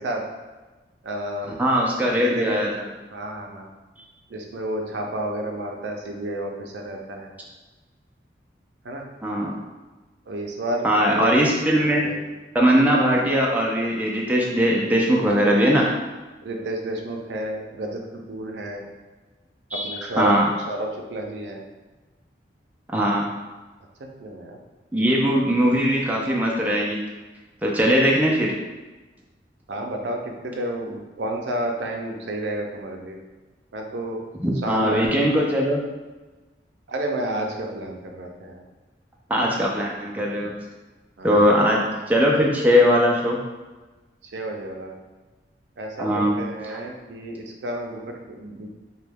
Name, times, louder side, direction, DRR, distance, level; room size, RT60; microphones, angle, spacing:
voice 1, 1.0-2.6 3.1-3.7 4.3-7.3 8.8-9.0 10.3-11.4 11.7-12.2 16.4-18.9 19.7-20.4 20.7-21.6 24.0-24.6 29.7-33.2 33.7-34.2 34.6-35.4 36.9-38.6 41.2-41.5 44.2-44.9 45.8-48.7, right 1 dB, 80° right, 1 dB, 0.5 m, -31 dB
voice 2, 1.6-2.7 9.2-9.6 10.8-12.1 12.5-15.9 19.7-19.9 20.2-20.5 22.9-23.3 24.9-27.0 27.6-28.5 34.4-35.8 39.3-40.5 41.2-43.4 46.0-46.4 46.7-46.8, equal, 10° right, -3 dB, 0.3 m, -20 dB
3.0 x 2.2 x 3.4 m, 1.2 s
head